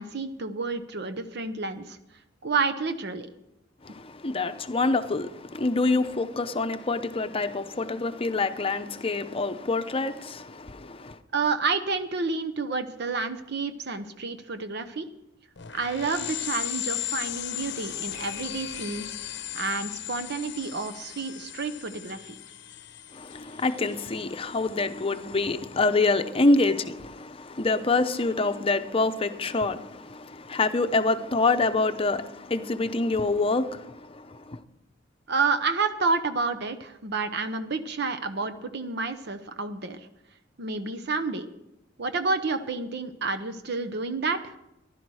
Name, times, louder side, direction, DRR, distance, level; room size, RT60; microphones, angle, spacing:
voice 1, 0.0-2.0 2.4-3.3 11.3-15.1 15.7-19.1 19.5-22.4 35.3-40.1 40.6-41.5 42.0-44.5, right 4 dB, 60° right, 0.8 m, -29 dB
voice 2, 3.8-11.2 23.1-34.6, left 3 dB, 30° left, 0.7 m, -26 dB
sound 1, 15.6-25.7, left 12 dB, 65° left, 0.8 m, -37 dB
15.5 x 11.5 x 4.8 m
head